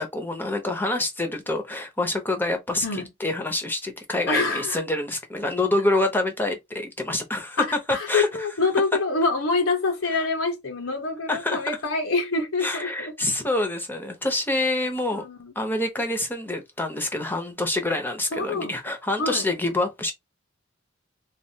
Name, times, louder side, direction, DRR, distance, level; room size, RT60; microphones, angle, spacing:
voice 1, 0.0-7.6 8.1-8.3 11.3-11.6 12.6-15.2 15.6-20.1, left 2 dB, 10° left, 0.7 m, -26 dB
voice 2, 4.3-4.8 7.6-13.1 15.1-15.5 18.3-18.7 19.2-19.5, left 3 dB, 90° left, 0.9 m, -26 dB
3.3 x 2.3 x 2.7 m
head